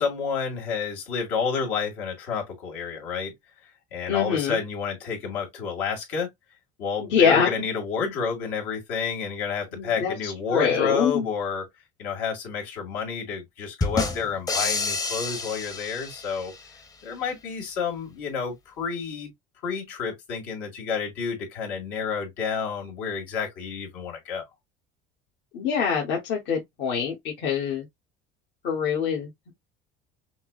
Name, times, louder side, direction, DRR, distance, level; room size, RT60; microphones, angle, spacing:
voice 1, 0.0-3.3 3.9-6.3 6.8-11.7 12.0-16.5 17.0-19.3 19.6-24.4, left 6 dB, 85° left, 2.1 m, -30 dB
voice 2, 4.1-4.6 7.1-7.5 9.7-11.3 25.5-27.9 28.6-29.3, left 7 dB, 65° left, 1.2 m, -24 dB
sound 1, 13.8-16.6, left 3 dB, 20° left, 0.7 m, -29 dB
5.8 x 2.0 x 2.3 m
cardioid pair, 120°, 20 cm